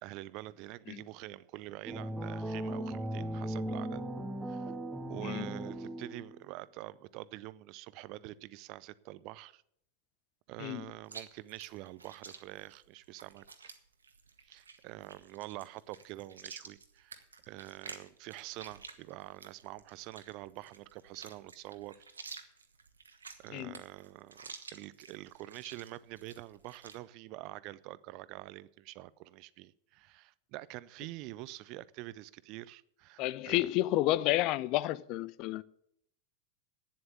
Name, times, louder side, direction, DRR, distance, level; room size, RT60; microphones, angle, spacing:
voice 1, 0.0-4.1 4.5-4.7 5.1-9.6 10.5-13.7 14.4-22.0 23.4-33.7, right 17 dB, 40° right, 0.5 m, -46 dB
sound 1, 1.8-6.4, right 1 dB, 10° right, 0.9 m, -37 dB
Chewing mastication, 11.0-27.0, right 5 dB, 75° right, 1.2 m, -51 dB
voice 2, 33.2-35.6, left 16 dB, 40° left, 0.4 m, -30 dB
9.5 x 7.8 x 9.4 m
figure-of-eight pair, 90°, 0 cm